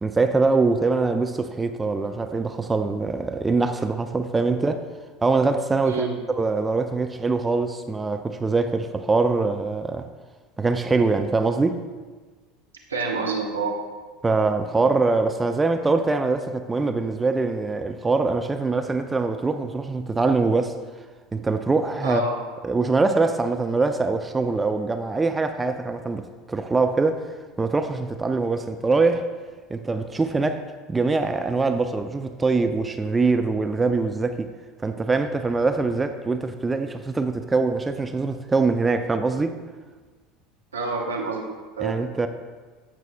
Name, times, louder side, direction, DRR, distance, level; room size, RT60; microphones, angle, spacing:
voice 1, 0.0-4.9 5.2-6.1 6.4-10.1 10.6-11.8 14.2-20.8 21.3-22.2 22.6-27.3 27.6-29.3 29.7-34.5 34.8-39.6 41.8-42.3, right 3 dB, 15° right, 0.5 m, -23 dB
voice 2, 12.9-13.7 22.0-22.3 40.7-42.1, right 4 dB, 80° right, 1.1 m, -28 dB
15.0 x 6.0 x 2.3 m
figure-of-eight pair, 75°, 0 cm